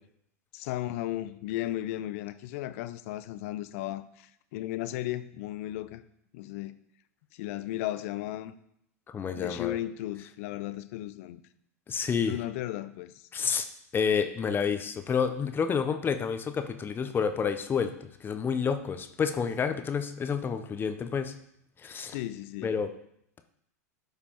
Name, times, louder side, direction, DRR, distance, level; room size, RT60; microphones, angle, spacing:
voice 1, 0.5-6.0 6.3-6.8 7.3-8.5 9.3-11.4 12.3-13.3 22.1-22.8, left 14 dB, 60° left, 0.5 m, -35 dB
voice 2, 9.1-9.7 11.9-12.4 13.3-13.7 13.9-21.3 21.8-22.1 22.6-22.9, left 6 dB, 25° left, 0.7 m, -29 dB
12.5 x 5.2 x 2.9 m
hypercardioid pair, 90°, 9 cm